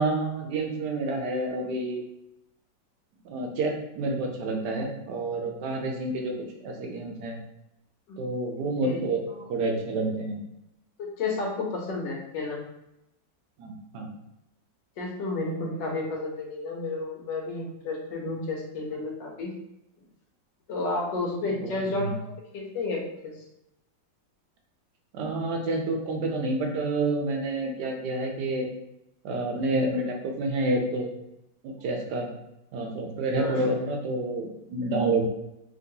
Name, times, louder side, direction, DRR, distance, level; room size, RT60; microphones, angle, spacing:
voice 1, 0.0-2.0 3.2-6.4 6.6-7.4 8.2-9.2 9.5-10.4 13.6-14.1 21.6-22.1 25.1-28.7 29.2-31.1 31.6-32.3 32.7-35.2, right 2 dB, 70° right, 1 dB, 1.1 m, -28 dB
voice 2, 8.6-9.0 11.0-12.6 15.0-19.5 20.7-23.4 33.4-33.6, left 3 dB, 80° left, -1 dB, 1.5 m, -32 dB
2.9 x 2.9 x 2.7 m, 0.87 s
omnidirectional pair, 1.9 m